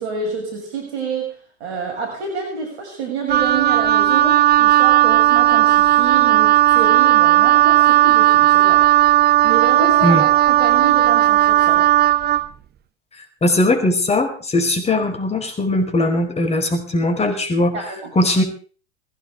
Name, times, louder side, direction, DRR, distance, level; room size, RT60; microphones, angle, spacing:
voice 1, 0.0-8.9 9.2-11.9 17.7-18.1, right 5 dB, 70° right, 2 dB, 7.1 m, -28 dB
Wind instrument woodwind instrument, 3.3-12.5, right 13 dB, 30° right, 1.0 m, -14 dB
voice 2, 13.4-17.7 18.1-18.4, left 1 dB, 20° left, 6 dB, 4.9 m, -19 dB
21.0 x 17.0 x 3.7 m, 0.40 s
hypercardioid pair, 90°, 35 cm